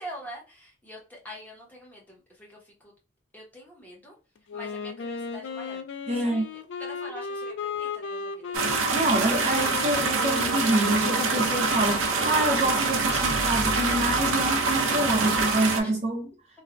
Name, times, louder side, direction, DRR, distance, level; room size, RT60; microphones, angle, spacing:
voice 1, 0.0-2.6 3.3-4.1 4.5-5.8 6.4-6.5 6.8-8.6 15.8-15.9, equal, 10° left, 0.8 m, -44 dB
Wind instrument woodwind instrument, 4.5-12.3, left 5 dB, 60° left, 0.3 m, -36 dB
voice 2, 6.1-6.5 8.9-16.3, right 1 dB, 30° right, 0.6 m, -26 dB
sound 1, 8.5-15.8, right 4 dB, 80° right, 0.5 m, -25 dB
3.2 x 2.1 x 2.4 m
head